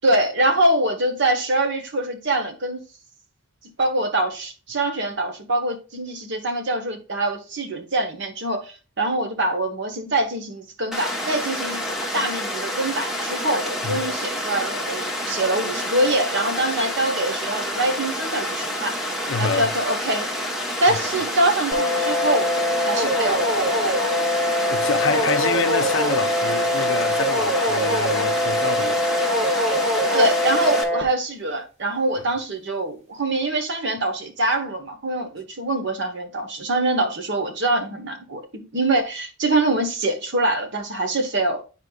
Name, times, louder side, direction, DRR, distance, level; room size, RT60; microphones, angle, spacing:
voice 1, 0.0-2.8 3.8-11.8 12.1-19.0 19.4-20.3 20.8-22.5 22.8-23.5 30.1-41.6, right 2 dB, 55° right, 1.1 m, -24 dB
Water, 10.9-30.8, equal, ahead, 1.0 m, -28 dB
voice 2, 19.3-19.7 20.9-21.0 24.7-29.0, left 4 dB, 65° left, 0.6 m, -27 dB
sound 1, 21.7-31.0, left 1 dB, 30° right, 1.2 m, -23 dB
9.6 x 4.3 x 2.3 m
head